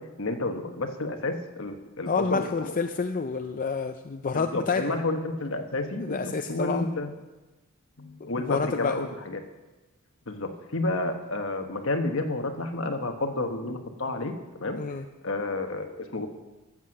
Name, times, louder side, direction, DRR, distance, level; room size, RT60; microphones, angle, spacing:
voice 1, 0.0-2.7 4.3-7.1 8.0-9.4 10.3-14.8 15.2-16.3, left 2 dB, 60° left, 5 dB, 1.2 m, -31 dB
voice 2, 2.1-4.8 6.0-6.9 8.4-9.0 14.8-15.0, left 4 dB, 35° left, 6 dB, 0.4 m, -28 dB
13.5 x 7.8 x 6.4 m, 1.1 s
head